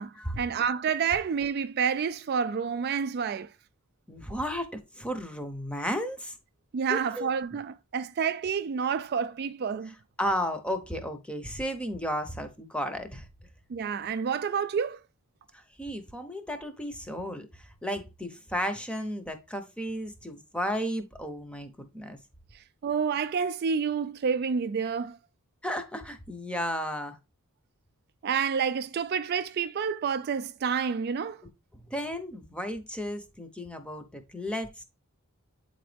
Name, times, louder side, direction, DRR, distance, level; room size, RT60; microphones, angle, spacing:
voice 1, 0.0-3.5 6.7-9.9 13.7-15.0 22.5-25.2 28.2-31.4, right 6 dB, 45° right, 0.3 m, -29 dB
voice 2, 4.1-6.4 6.9-7.3 10.2-13.3 15.5-22.2 25.6-27.2 31.9-34.8, equal, 5° left, 0.7 m, -34 dB
8.8 x 3.9 x 3.3 m
head